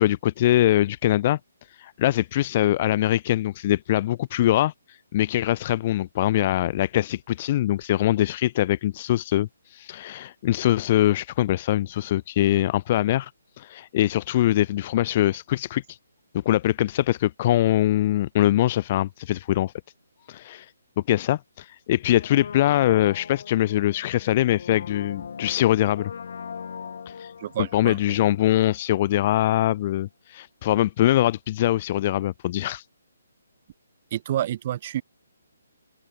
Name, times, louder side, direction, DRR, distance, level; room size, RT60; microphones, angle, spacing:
voice 1, 0.0-1.4 1.8-13.3 13.6-16.0 16.5-19.7 20.3-20.7 21.1-26.1 27.1-27.3 27.7-32.8, left 13 dB, 35° left, 0.4 m, -23 dB
Brass instrument, 22.1-29.0 29.2-29.3, left 6 dB, 55° left, 3.0 m, -40 dB
voice 2, 27.4-28.2 34.1-35.0, right 12 dB, 40° right, 1.7 m, -29 dB
open air
figure-of-eight pair, 140°, 0 cm